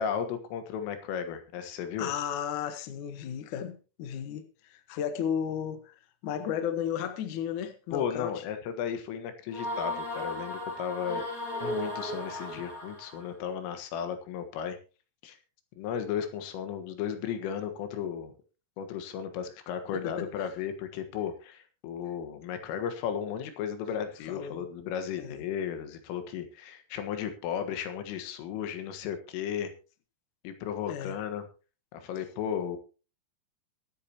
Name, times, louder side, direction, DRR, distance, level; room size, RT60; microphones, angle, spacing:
voice 1, 0.0-2.1 7.9-11.2 11.6-14.8 15.2-15.4 15.8-18.3 18.8-29.7 30.4-31.5 31.9-32.8, left 8 dB, 90° left, 4.1 m, -34 dB
voice 2, 2.0-5.9 6.2-8.3 19.9-20.3 24.3-24.6 25.2-25.4 30.9-31.2, left 8 dB, 70° left, 1.8 m, -34 dB
sound 1, 9.5-13.3, left 1 dB, 45° left, 1.0 m, -35 dB
23.0 x 8.6 x 2.9 m
omnidirectional pair, 5.6 m